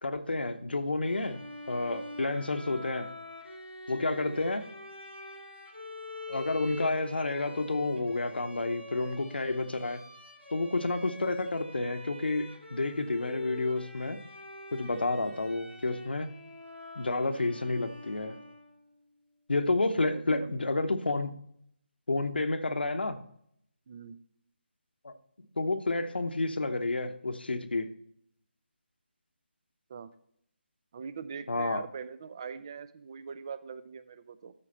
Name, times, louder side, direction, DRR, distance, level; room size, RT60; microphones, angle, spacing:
voice 1, 0.0-3.1 3.9-4.7 6.3-10.0 10.5-14.2 14.7-16.3 17.0-18.4 19.5-21.3 22.1-23.2 25.0-25.1 25.6-27.9 31.5-31.8, left 2 dB, 60° left, 7 dB, 0.8 m, -30 dB
Bowed string instrument, 1.0-18.9, left 2 dB, 90° right, 2.6 m, -45 dB
voice 2, 20.0-20.6 23.9-24.2 29.9-30.1 30.9-34.5, right 6 dB, 25° right, 14 dB, 0.4 m, -42 dB
13.0 x 4.9 x 4.2 m, 0.69 s
figure-of-eight pair, 155°, 6 cm